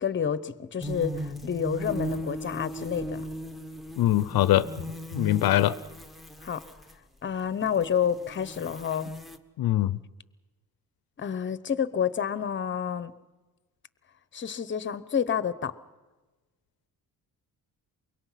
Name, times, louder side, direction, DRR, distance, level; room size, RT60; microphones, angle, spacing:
voice 1, 0.0-3.2 6.4-6.7 7.2-9.1 11.2-13.1 14.3-15.7, left 8 dB, 30° left, 15 dB, 0.9 m, -29 dB
sound 1, 0.8-6.9 7.5-9.4, equal, ahead, 1.1 m, -37 dB
voice 2, 4.0-4.7 5.1-5.8 9.6-10.0, left 14 dB, 70° left, 16 dB, 0.6 m, -22 dB
24.0 x 22.5 x 5.8 m, 1.2 s
cardioid pair, 135°, 37 cm